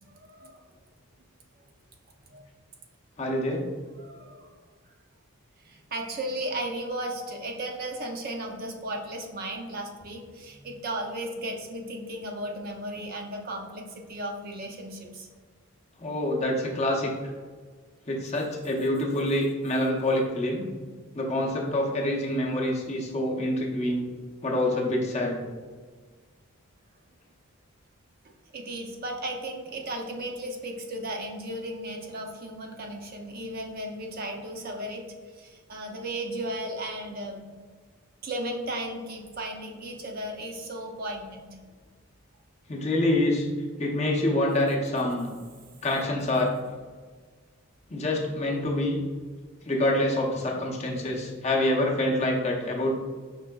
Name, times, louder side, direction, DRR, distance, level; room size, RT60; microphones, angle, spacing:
voice 1, 0.0-0.6 2.3-2.4 4.0-4.6 5.6-15.3 28.5-35.0 35.4-37.5 38.2-41.5, right 1 dB, 45° right, 2 dB, 0.5 m, -35 dB
voice 2, 3.2-3.6 16.0-17.1 18.1-20.7 21.1-24.0 24.4-25.4 42.7-43.5 43.8-45.3 45.8-46.5 47.9-49.0 49.6-52.9, left 1 dB, 30° left, -2 dB, 0.6 m, -26 dB
5.2 x 3.6 x 2.2 m, 1.5 s
head